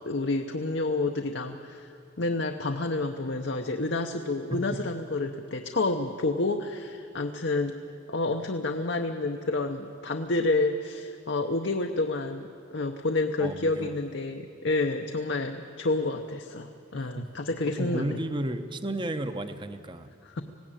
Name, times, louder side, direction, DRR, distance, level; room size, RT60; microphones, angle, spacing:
voice 1, 0.1-1.9 2.2-7.7 8.1-18.2 20.2-20.4, left 2 dB, 65° left, 4 dB, 0.8 m, -29 dB
voice 2, 13.4-13.9 16.9-17.3 17.7-20.4, right 1 dB, 25° right, 9 dB, 0.8 m, -33 dB
20.0 x 16.5 x 9.0 m, 2.4 s
head